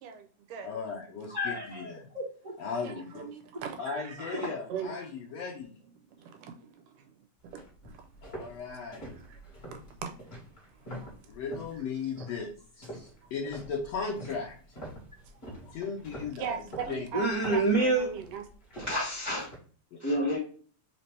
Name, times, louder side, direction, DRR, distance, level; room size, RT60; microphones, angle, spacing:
voice 1, 0.0-0.7 2.8-5.1 7.4-8.1 8.7-8.8 9.1-9.4 9.7-10.4 10.7-11.1 12.2-12.3 13.2-13.3 15.2-15.3 16.4-18.4, right 7 dB, 85° right, 2.3 m, -40 dB
voice 2, 0.6-2.1 2.6-3.3 3.8-5.7 8.2-9.1 11.3-14.8 15.7-16.6 16.9-17.1 19.9-20.0, left 5 dB, 75° left, 1.5 m, -37 dB
voice 3, 1.3-2.2 4.3-4.5 17.1-18.0 18.8-19.5 20.0-20.4, right 2 dB, 60° right, 0.7 m, -28 dB
sound 1, 7.4-11.8 12.2-12.5 12.8-19.6, equal, 30° left, 1.2 m, -45 dB
5.0 x 2.8 x 3.2 m
omnidirectional pair, 3.6 m